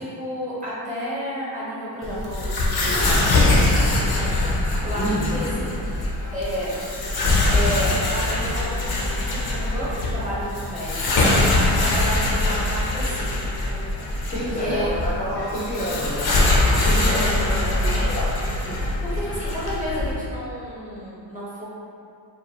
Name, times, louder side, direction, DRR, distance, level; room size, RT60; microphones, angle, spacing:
voice 1, 0.0-4.5 4.8-5.9 6.3-6.7 7.5-13.5 14.6-15.0 16.7-18.1 19.1-21.7, equal, 15° right, -9 dB, 1.0 m, -31 dB
sound 1, 2.0-20.1, left 2 dB, 55° left, 0.7 m, -23 dB
voice 2, 4.9-5.3 14.3-18.3 18.7-18.8 19.1-19.2, equal, 20° left, -10 dB, 0.7 m, -29 dB
5.0 x 2.4 x 2.8 m, 2.4 s
wide cardioid pair, 160°, 43 cm